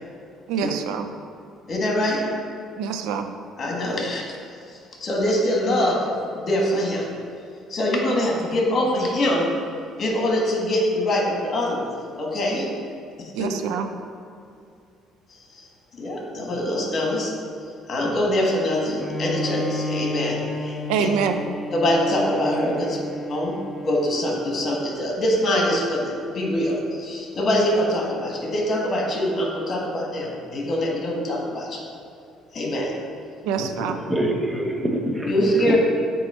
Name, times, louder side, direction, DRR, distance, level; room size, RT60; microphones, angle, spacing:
voice 1, 0.5-1.1 2.8-3.3 13.3-13.9 20.9-21.4 22.7-22.8 33.4-34.0, right 7 dB, 85° right, 7 dB, 0.4 m, -25 dB
voice 2, 1.7-2.6 3.6-4.2 4.7-6.1 6.3-7.0 7.7-9.5 10.0-12.7 13.2-13.5 15.5-15.7 16.0-17.3 17.9-21.1 21.7-23.0 23.3-23.6 23.8-31.8 32.5-32.9 35.3-35.8, left 1 dB, 40° left, -1 dB, 1.5 m, -24 dB
Bowed string instrument, 19.0-24.6, left 1 dB, 15° left, 0.4 m, -31 dB
voice 3, 33.6-35.8, right 1 dB, 15° right, 2 dB, 0.7 m, -26 dB
8.9 x 3.1 x 4.3 m, 2.5 s
cardioid pair, 100°, 0 cm